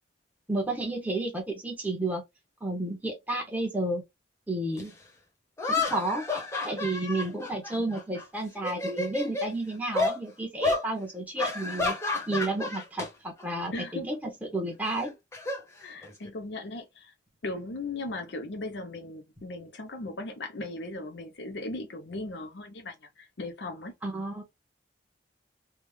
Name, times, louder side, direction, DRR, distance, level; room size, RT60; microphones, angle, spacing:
voice 1, 0.5-2.2 2.6-4.0 4.5-4.9 5.7-6.3 6.6-12.0 12.3-15.1 24.0-24.4, right 2 dB, 10° right, 1.1 m, -31 dB
sound 1, 4.8-4.9 5.6-8.2 8.6-9.5 9.9-10.2 10.6-10.9 11.4-13.1 13.4-13.7 14.9-16.3, left 3 dB, 15° left, 1.0 m, -30 dB
voice 2, 13.7-14.0 15.8-17.1 17.4-23.9, left 2 dB, 65° left, 0.7 m, -37 dB
3.5 x 2.4 x 3.2 m
head